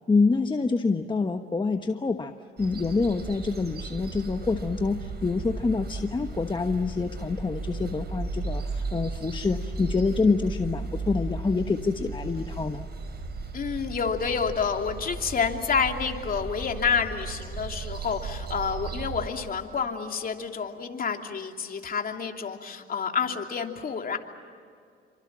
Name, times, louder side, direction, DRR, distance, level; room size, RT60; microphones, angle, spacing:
voice 1, 0.1-2.3 2.6-12.9, left 4 dB, 25° left, 6 dB, 1.2 m, -26 dB
sound 1, 2.6-19.3, right 3 dB, 55° right, 5.7 m, -35 dB
voice 2, 13.5-24.2, left 6 dB, 45° left, 3 dB, 3.0 m, -29 dB
29.5 x 25.0 x 7.5 m, 2.3 s
cardioid pair, 90°, 20 cm